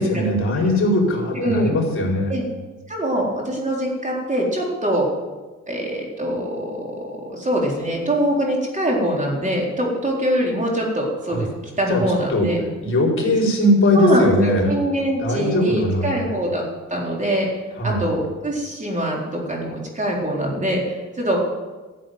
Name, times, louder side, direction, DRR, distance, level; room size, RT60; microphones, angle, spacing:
voice 1, 0.0-2.3 11.3-11.4 11.9-12.5 12.8-14.7 15.2-16.4 17.8-18.0, left 1 dB, 45° left, -1 dB, 4.7 m, -20 dB
voice 2, 1.4-1.7 2.3-2.4 2.9-5.1 5.7-6.8 7.3-11.5 11.8-12.6 13.9-16.6 16.9-21.4, right 1 dB, 25° right, -2 dB, 4.1 m, -23 dB
13.0 x 7.6 x 9.4 m, 1.3 s
cardioid pair, 90°, 30 cm